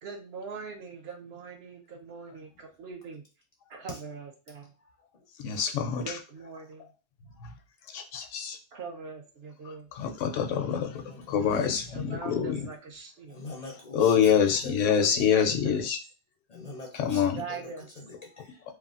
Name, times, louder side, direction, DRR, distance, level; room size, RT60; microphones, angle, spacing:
voice 1, 0.0-3.2 3.7-4.7 6.0-6.9 8.7-9.9 11.9-13.4 15.0-15.8 17.3-17.9, right 5 dB, 65° right, 3 dB, 0.8 m, -42 dB
voice 2, 5.4-6.2 7.4-7.5 7.9-8.6 9.9-11.0 11.3-12.7 13.9-16.0 16.9-17.4, left 8 dB, 90° left, 6 dB, 0.9 m, -26 dB
voice 3, 13.3-15.3 16.5-17.6 18.1-18.6, left 2 dB, 50° left, -1 dB, 0.5 m, -44 dB
3.2 x 2.2 x 2.4 m, 0.32 s
omnidirectional pair, 1.2 m